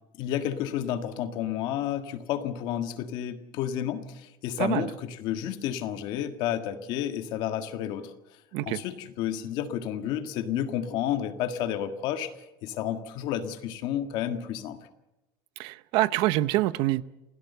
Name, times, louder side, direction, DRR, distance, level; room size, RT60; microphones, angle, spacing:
voice 1, 0.2-8.1 8.6-12.3 12.6-14.8, left 10 dB, 50° left, 8 dB, 1.7 m, -31 dB
voice 2, 15.6-17.0, right 17 dB, 55° right, 16 dB, 0.8 m, -25 dB
27.5 x 17.0 x 6.9 m, 1.0 s
cardioid pair, 180°, 10 cm